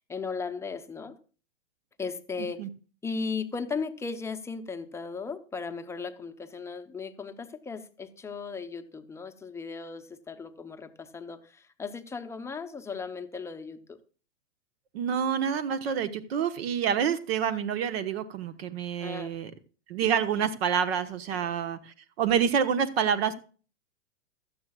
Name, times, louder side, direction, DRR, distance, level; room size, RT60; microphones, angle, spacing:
voice 1, 0.1-1.2 2.0-2.6 3.0-14.0 19.0-19.3 21.3-21.5, left 5 dB, 5° left, 8 dB, 0.8 m, -36 dB
voice 2, 14.9-19.5 19.9-23.3, right 7 dB, 55° right, 11 dB, 1.3 m, -27 dB
16.0 x 12.5 x 2.4 m, 0.38 s
hypercardioid pair, 125°, 36 cm